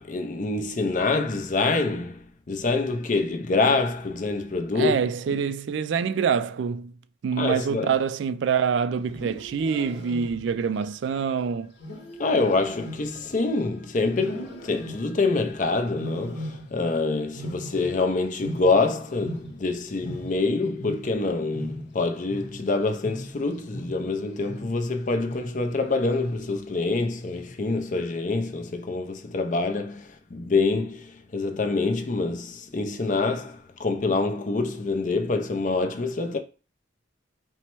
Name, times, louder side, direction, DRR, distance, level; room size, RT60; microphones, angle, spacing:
voice 1, 0.0-5.4 7.4-7.9 12.2-36.4, left 3 dB, 40° left, 0.5 m, -26 dB
voice 2, 4.8-6.9 7.2-11.7, right 6 dB, 65° right, 0.3 m, -25 dB
Wild animals, 9.0-10.7 11.8-13.7 14.1-15.3 15.9-17.0 17.2-19.7 20.0-24.9 25.3-25.7 26.2-26.6 27.3-27.8, equal, 60° left, 1.0 m, -39 dB
4.3 x 2.1 x 4.4 m
head